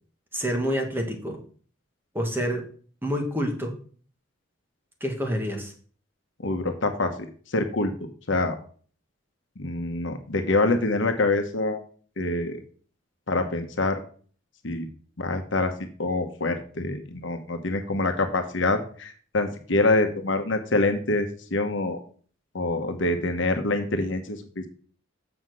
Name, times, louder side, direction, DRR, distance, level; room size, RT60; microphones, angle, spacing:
voice 1, 0.3-1.4 2.1-2.7 3.0-3.7 5.0-5.7, equal, 10° right, 2 dB, 1.7 m, -27 dB
voice 2, 6.4-7.3 7.5-7.9 8.3-8.5 9.6-11.8 12.2-12.6 13.3-14.0 14.6-14.9 15.2-15.7 16.0-22.0 22.5-24.7, left 2 dB, 70° left, 6 dB, 1.1 m, -25 dB
7.1 x 5.8 x 6.3 m, 0.44 s
head